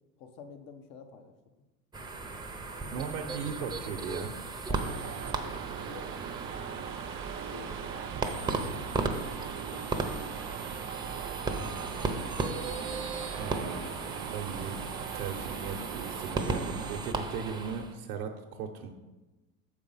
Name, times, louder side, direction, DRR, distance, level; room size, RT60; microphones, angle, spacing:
voice 1, 0.2-1.3 2.8-4.1 4.6-7.1 7.5-8.5 9.7-10.7, left 6 dB, 50° left, 7 dB, 1.1 m, -51 dB
sound 1, 1.9-18.0, right 3 dB, 10° right, 0.7 m, -36 dB
voice 2, 2.8-4.3 13.3-13.9 14.3-18.9, right 6 dB, 70° right, 2 dB, 0.9 m, -37 dB
sound 2, 4.7-17.0, right 10 dB, 30° right, 0.4 m, -41 dB
6.7 x 4.9 x 5.6 m, 1.1 s
hypercardioid pair, 95°, 43 cm